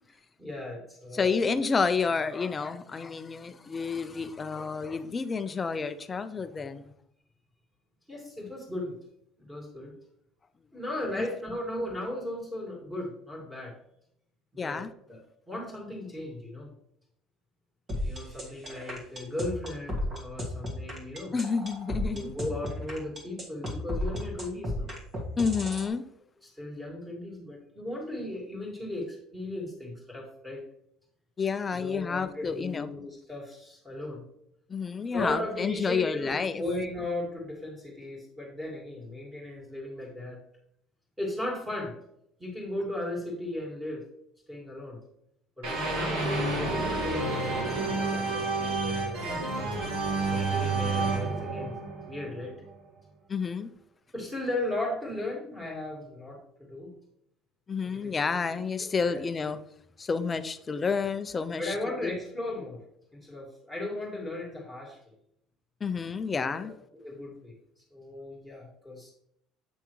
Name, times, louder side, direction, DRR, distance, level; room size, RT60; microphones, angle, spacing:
voice 1, 0.4-1.6 8.1-9.0 9.4-9.9 10.7-13.7 14.5-14.8 15.1-15.2 15.5-16.7 18.0-21.3 22.1-24.9 26.4-30.7 31.7-34.2 35.1-40.4 41.2-41.9 42.4-44.0 44.5-45.0 45.6-49.4 49.7-49.8 50.3-51.8 52.1-52.5 54.1-56.9 57.9-58.1 58.5-59.2 61.6-62.8 63.1-65.1 66.3-67.6 67.9-69.1, left 1 dB, 5° right, 2.1 m, -36 dB
voice 2, 1.1-6.9 11.1-11.2 14.6-14.9 21.3-22.3 25.4-26.0 31.4-32.9 34.7-36.6 46.0-46.4 53.3-53.7 57.7-59.6 60.0-61.8 62.0-62.2 65.8-66.7, left 5 dB, 15° left, 0.4 m, -30 dB
sound 1, 17.9-25.9, left 1 dB, 25° right, 1.6 m, -34 dB
sound 2, 45.6-52.6, right 3 dB, 75° right, 2.7 m, -30 dB
8.0 x 5.8 x 3.1 m
cardioid pair, 175°, 0 cm